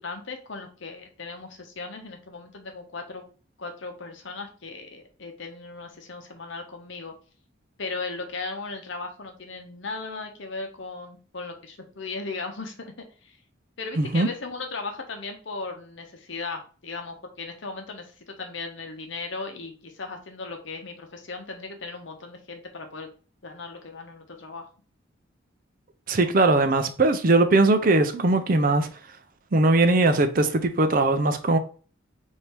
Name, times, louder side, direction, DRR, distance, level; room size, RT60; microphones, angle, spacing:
voice 1, 0.0-3.3 3.6-7.1 7.8-12.9 13.2-13.4 13.8-23.1 23.4-24.7, left 3 dB, 65° left, 0.9 m, -37 dB
voice 2, 14.0-14.3 26.1-28.9 29.5-31.6, right 2 dB, 45° right, 0.5 m, -20 dB
3.3 x 2.7 x 4.4 m
head